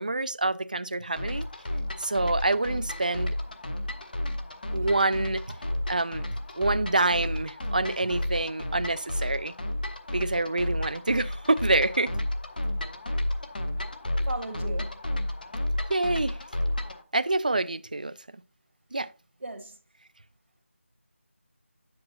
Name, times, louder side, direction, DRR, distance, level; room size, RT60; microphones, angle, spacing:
voice 1, 0.0-1.5 2.0-3.3 4.7-5.6 5.9-6.3 6.6-9.5 10.1-12.1 15.9-16.4 17.1-18.2 18.9-19.1, right 2 dB, 40° right, 0.4 m, -27 dB
sound 1, 1.2-17.0, left 1 dB, 40° left, 0.9 m, -32 dB
voice 2, 14.3-14.9 19.4-19.7, right 2 dB, 70° right, 1.4 m, -35 dB
9.5 x 7.7 x 2.8 m
figure-of-eight pair, 175°, 7 cm